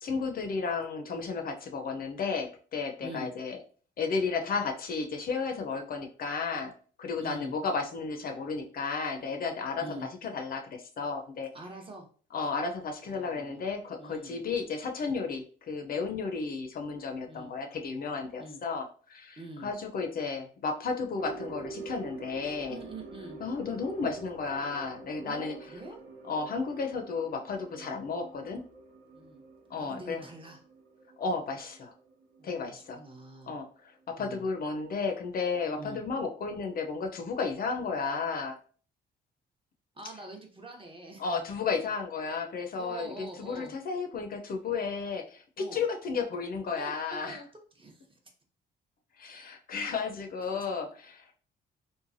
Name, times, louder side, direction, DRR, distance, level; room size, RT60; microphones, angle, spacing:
voice 1, 0.0-3.6 4.0-6.7 7.0-9.8 10.2-11.5 12.3-22.8 23.4-25.6 26.3-28.6 29.7-30.2 31.2-31.9 32.4-33.0 33.5-38.6 41.2-47.4 49.2-51.3, left 4 dB, 50° left, 4 dB, 0.5 m, -33 dB
voice 2, 7.2-7.5 9.8-10.1 11.5-12.1 13.1-13.7 14.0-14.4 17.3-17.5 18.4-18.6 19.4-19.7 22.7-23.4 25.2-26.0 29.1-29.4 29.8-30.6 32.4-33.6 34.2-34.5 35.8-36.0 39.9-41.2 42.7-43.7 45.6-45.8 46.8-47.5 47.7-48.2 50.4-50.5, right 1 dB, 25° right, 2 dB, 0.7 m, -45 dB
sound 1, 21.2-33.7 34.0-34.1 34.7-34.8, right 3 dB, 70° right, 0.7 m, -47 dB
3.1 x 2.2 x 2.5 m, 0.43 s
cardioid pair, 90°, 20 cm